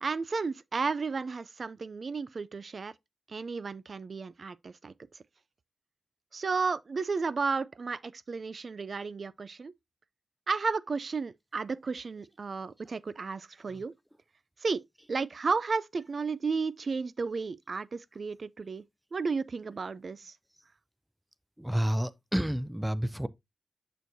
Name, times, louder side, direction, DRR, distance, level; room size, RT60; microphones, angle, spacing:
voice 1, 0.0-2.9 3.3-4.9 6.3-9.7 10.5-13.9 14.6-14.8 15.1-18.8 19.1-20.3, right 4 dB, 60° right, 0.4 m, -33 dB
voice 2, 21.6-23.3, equal, 10° right, 0.6 m, -30 dB
6.7 x 6.3 x 2.6 m
cardioid pair, 50°, 0 cm